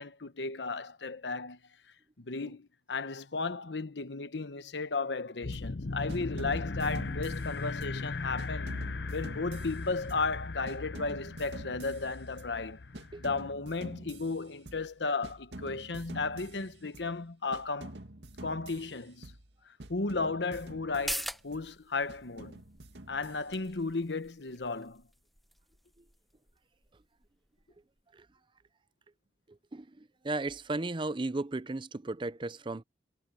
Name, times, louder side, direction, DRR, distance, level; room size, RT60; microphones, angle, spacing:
voice 1, 0.0-1.6 2.2-8.7 9.1-12.8 13.2-17.9 18.4-19.3 19.9-22.6 23.1-25.0, left 3 dB, 85° left, 1.1 m, -34 dB
sound 1, 5.4-13.5, left 3 dB, 70° left, 0.8 m, -38 dB
sound 2, 5.5-5.8 6.1-8.0 8.4-10.4 10.7-12.6 12.9-14.9 15.2-17.2 17.5-19.5 19.8-21.7 22.1-23.7, right 1 dB, 80° right, 2.2 m, -48 dB
sound 3, 20.9-28.0 28.3-28.4, equal, ahead, 1.2 m, -44 dB
voice 2, 29.5-32.8, right 2 dB, 30° right, 0.6 m, -35 dB
head